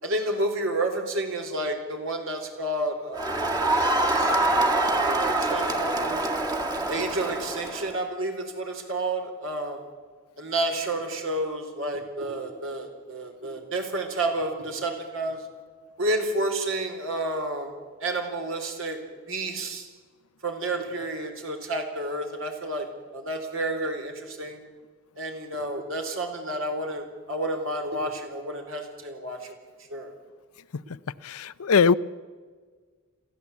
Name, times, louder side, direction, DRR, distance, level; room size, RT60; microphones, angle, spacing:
voice 1, 0.0-3.4 4.0-4.3 4.9-6.3 6.8-9.8 10.4-15.4 16.0-17.7 18.0-19.0 19.3-19.9 20.4-22.9 23.1-24.6 25.2-29.5 29.9-30.1, right 1 dB, 65° right, 4.0 m, -30 dB
Crowd, 3.2-8.0, right 2 dB, 20° right, 1.9 m, -25 dB
voice 2, 31.2-31.9, left 5 dB, 90° left, 0.6 m, -20 dB
22.5 x 15.0 x 8.3 m
head